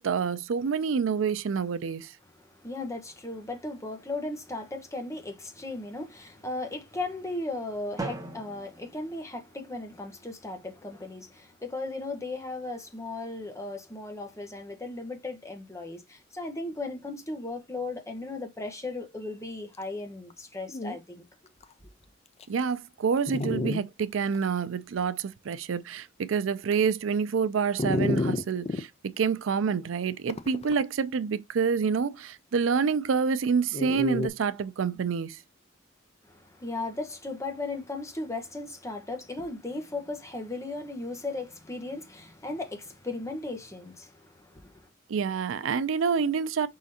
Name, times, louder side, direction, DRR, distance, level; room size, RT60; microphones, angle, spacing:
voice 1, 0.0-2.1 22.5-28.9 29.2-35.4 45.1-46.7, right 6 dB, 85° right, 0.4 m, -27 dB
voice 2, 2.3-21.2 36.3-44.9, left 2 dB, 15° left, 1.0 m, -36 dB
Drum, 8.0-10.0, right 2 dB, 20° right, 0.7 m, -40 dB
Dog, 20.3-20.4 20.7-21.0 21.6-21.7 22.4-22.5 23.3-23.8 24.3-24.4 27.8-28.8 30.3-30.8 33.7-34.3, left 2 dB, 35° left, 0.5 m, -29 dB
4.9 x 3.8 x 2.7 m
head